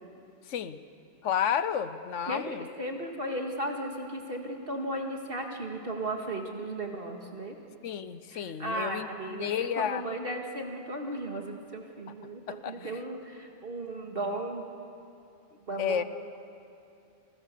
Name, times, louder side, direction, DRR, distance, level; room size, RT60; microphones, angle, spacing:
voice 1, 0.5-0.8 1.2-2.7 7.8-10.0 12.5-13.0 15.8-16.0, left 8 dB, 85° left, 13 dB, 1.2 m, -31 dB
voice 2, 2.3-7.6 8.3-9.5 9.8-14.6 15.7-16.0, right 1 dB, 50° right, 2 dB, 2.1 m, -35 dB
29.5 x 20.0 x 6.8 m, 2.7 s
omnidirectional pair, 1.2 m